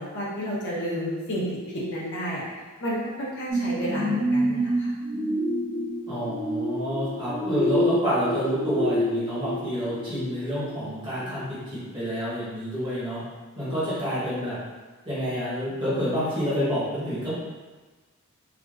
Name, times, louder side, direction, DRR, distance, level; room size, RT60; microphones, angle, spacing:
voice 1, 0.0-1.4 1.7-2.4 2.8-4.9 13.6-13.7, equal, 55° left, -7 dB, 0.8 m, -31 dB
sound 1, 3.5-10.9 11.4-11.5, equal, 70° right, 1.0 m, -28 dB
voice 2, 6.1-13.2 13.6-14.6 15.1-17.3, equal, 20° right, -10 dB, 1.1 m, -28 dB
3.3 x 2.4 x 2.4 m, 1.3 s
head